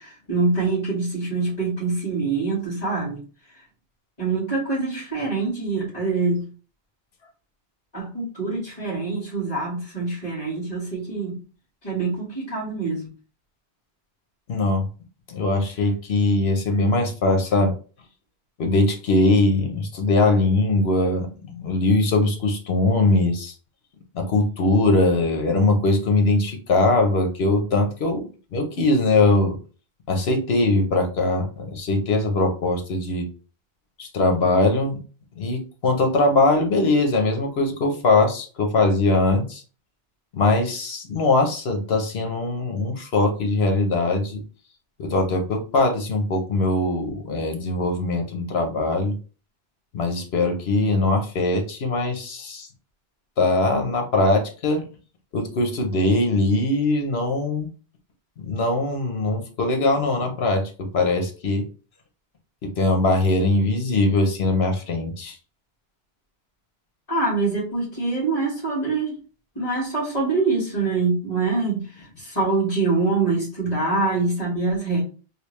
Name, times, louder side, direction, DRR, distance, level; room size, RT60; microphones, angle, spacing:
voice 1, 0.0-3.2 4.2-6.4 7.9-11.4 11.8-13.1 67.1-69.2 69.6-75.0, right 3 dB, 35° left, -6 dB, 1.8 m, -25 dB
voice 2, 14.5-14.9 15.3-17.7 18.6-23.5 24.1-29.6 30.1-33.3 34.0-35.0 35.4-39.6 40.3-44.4 45.0-49.1 49.9-52.7 53.4-54.8 55.3-57.7 58.4-61.6 62.6-65.4, left 2 dB, 75° left, 4 dB, 1.1 m, -21 dB
3.3 x 2.7 x 3.1 m, 0.36 s
omnidirectional pair, 1.1 m